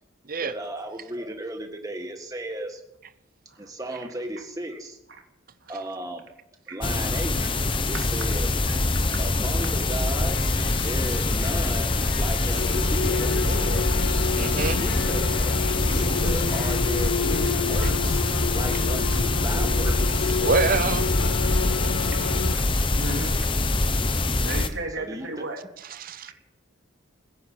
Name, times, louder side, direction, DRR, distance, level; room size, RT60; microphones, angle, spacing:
voice 1, 0.4-2.8 3.6-5.0 5.7-6.2 6.7-8.8 9.2-11.9 12.1-13.9 14.5-18.2 18.5-20.4 21.2-21.5 25.0-25.4, right 1 dB, 15° right, 4 dB, 1.8 m, -35 dB
sound 1, 6.8-24.7, left 2 dB, 25° left, 0.9 m, -24 dB
sound 2, 9.9-16.8, left 5 dB, 55° left, 0.9 m, -40 dB
sound 3, 12.5-22.6, left 5 dB, 75° left, 0.6 m, -30 dB
voice 2, 14.2-14.8 20.4-21.1 25.9-26.3, right 4 dB, 45° right, 14 dB, 0.6 m, -26 dB
voice 3, 22.1-23.4 24.4-25.6, right 2 dB, 70° right, 3 dB, 2.8 m, -35 dB
16.0 x 9.7 x 8.5 m, 0.87 s
head